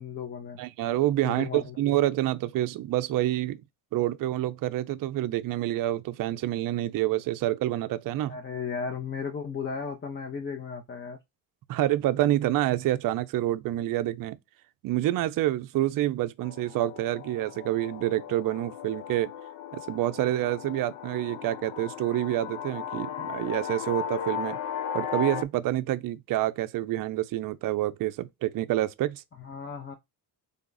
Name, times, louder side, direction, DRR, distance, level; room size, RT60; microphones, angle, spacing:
voice 1, 0.0-0.6 1.2-1.8 8.3-11.2 29.4-29.9, left 6 dB, 25° left, 0.7 m, -35 dB
voice 2, 0.6-3.6 3.9-8.4 11.7-14.4 14.8-19.3 19.7-24.6 24.9-29.2, right 14 dB, 50° right, 0.5 m, -27 dB
sound 1, 16.4-25.4, left 8 dB, 90° left, 0.6 m, -36 dB
3.4 x 2.4 x 3.9 m
supercardioid pair, 80°, 45 cm